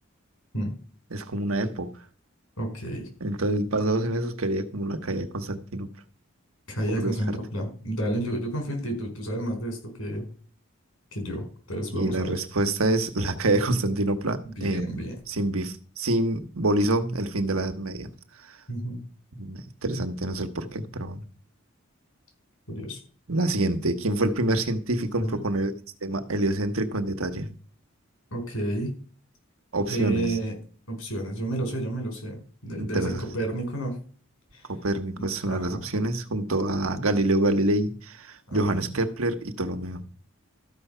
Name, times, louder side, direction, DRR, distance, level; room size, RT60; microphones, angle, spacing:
voice 1, 1.1-1.9 3.2-5.9 7.0-7.4 11.9-18.1 18.5-18.6 19.3-21.2 23.3-25.7 26.0-27.5 29.7-30.4 32.8-33.3 34.7-40.0, right 1 dB, 85° right, 1.3 m, -27 dB
voice 2, 2.6-3.1 6.7-10.3 11.1-12.4 14.4-15.2 18.7-19.0 22.7-23.0 25.2-25.4 28.3-28.9 29.9-30.5 30.9-34.0 34.5-34.6 35.4-35.8 38.5-38.6, right 1 dB, 85° left, 4.9 m, -31 dB
13.5 x 5.9 x 5.7 m
head